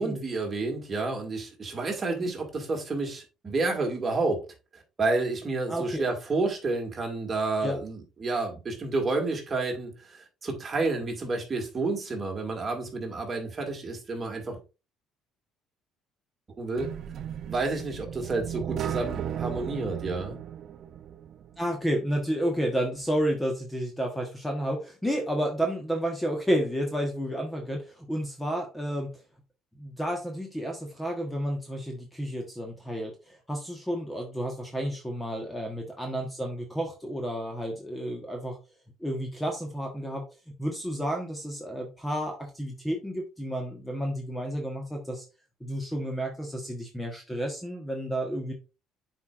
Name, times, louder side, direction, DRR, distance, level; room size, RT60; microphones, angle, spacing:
voice 1, 0.0-4.4 4.7-14.6 16.6-16.9 17.5-20.4, right 3 dB, 30° right, 2.1 m, -30 dB
voice 2, 5.7-6.0 7.6-7.8 21.6-29.1 29.7-38.6 39.0-40.2 40.6-45.2 45.6-48.5, equal, 5° left, 1.2 m, -31 dB
sound 1, 16.8-21.7, right 9 dB, 55° right, 0.5 m, -35 dB
9.4 x 4.6 x 2.5 m
cardioid pair, 110°, 0 cm